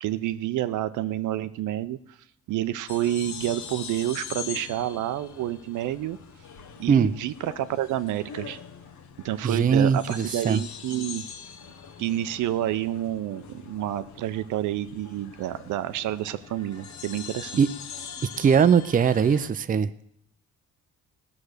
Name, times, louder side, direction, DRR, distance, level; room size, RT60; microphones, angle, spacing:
voice 1, 0.0-2.0 2.5-6.2 6.8-8.6 9.2-11.2 12.0-17.6, right 13 dB, 80° right, 12 dB, 0.7 m, -29 dB
sound 1, 2.9-19.5, left 7 dB, 70° left, 1.2 m, -42 dB
voice 2, 9.4-10.6 17.6-17.7 18.4-20.0, right 6 dB, 30° right, 12 dB, 0.5 m, -21 dB
16.5 x 6.0 x 6.6 m, 0.70 s
cardioid pair, 90°, 30 cm